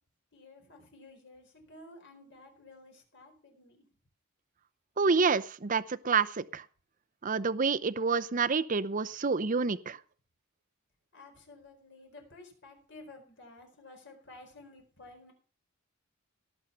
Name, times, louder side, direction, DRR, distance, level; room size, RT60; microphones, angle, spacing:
voice 1, 0.3-3.9 11.1-15.3, left 2 dB, 60° left, 3 dB, 4.4 m, -53 dB
voice 2, 5.0-6.6 7.2-10.0, right 4 dB, 40° right, 14 dB, 0.7 m, -28 dB
17.5 x 8.0 x 5.7 m, 0.40 s
head